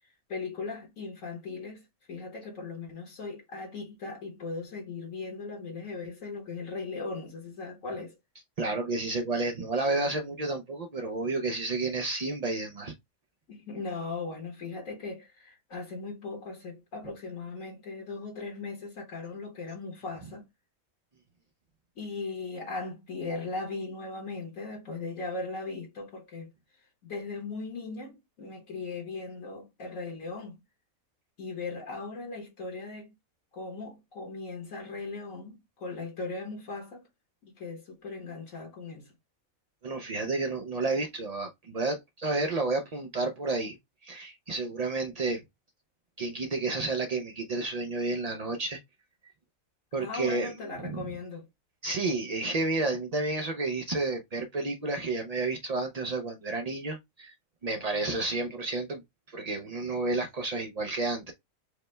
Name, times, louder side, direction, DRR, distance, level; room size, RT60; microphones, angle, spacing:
voice 1, 0.3-8.2 13.5-20.5 22.0-26.5 27.0-30.6 31.4-33.1 33.5-37.1 37.4-39.1 50.0-51.5, left 3 dB, 70° left, 1.6 m, -38 dB
voice 2, 8.6-12.9 39.8-43.8 44.0-45.4 46.2-48.8 49.9-50.5 50.8-51.1 51.8-57.3 57.6-59.0 59.3-61.3, right 3 dB, 75° right, 0.3 m, -31 dB
4.8 x 2.2 x 3.1 m
omnidirectional pair, 1.4 m